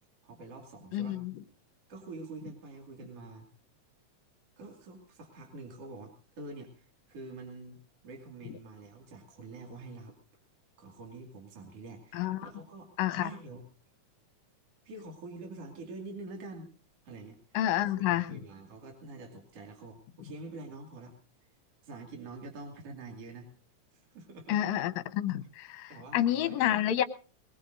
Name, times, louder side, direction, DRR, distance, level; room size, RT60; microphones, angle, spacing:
voice 1, 0.2-1.2 1.9-3.5 4.6-10.2 10.8-12.9 13.2-13.6 14.8-16.7 17.0-17.4 17.8-21.1 21.8-23.5 23.9-24.6 25.9-26.8, right 3 dB, 50° right, 1 dB, 3.3 m, -46 dB
voice 2, 0.9-1.3 12.1-12.5 13.0-13.3 17.5-18.4 24.5-27.0, left 12 dB, 70° left, 9 dB, 2.0 m, -29 dB
21.5 x 19.5 x 2.6 m, 0.37 s
omnidirectional pair, 3.5 m